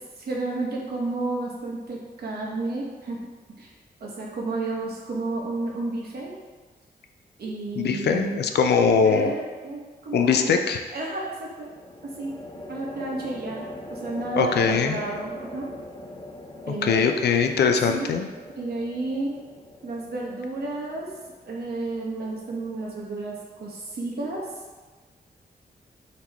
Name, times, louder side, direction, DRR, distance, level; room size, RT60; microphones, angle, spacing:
voice 1, 0.2-3.2 3.6-3.7 4.0-6.3 7.4-8.5 9.0-10.5 10.9-11.7 12.2-12.3 12.7-15.7 16.7-17.1 17.9-18.1 18.6-19.3 19.8-21.1 21.4-24.4, right 2 dB, 70° right, -3 dB, 1.0 m, -31 dB
voice 2, 7.8-9.3 10.1-10.8 14.4-15.0 16.7-18.3, left 6 dB, 85° left, 5 dB, 0.4 m, -21 dB
sound 1, 11.6-22.9, left 1 dB, 25° left, 0.4 m, -42 dB
4.1 x 3.0 x 3.4 m, 1.3 s
cardioid pair, 85°, 17 cm